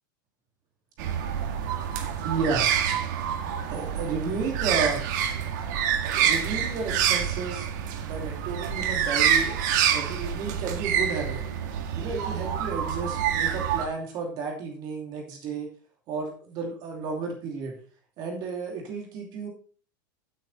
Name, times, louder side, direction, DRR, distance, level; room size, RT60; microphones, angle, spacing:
sound 1, 1.0-13.9, right 8 dB, 60° right, 1.9 m, -27 dB
voice 1, 2.2-2.7 3.7-5.0 6.1-7.7 8.0-9.6 9.9-11.4 12.0-15.7 16.1-17.8 18.2-19.5, right 4 dB, 40° right, 2 dB, 2.7 m, -32 dB
10.0 x 8.5 x 4.1 m, 0.40 s
supercardioid pair, 150°, 11 cm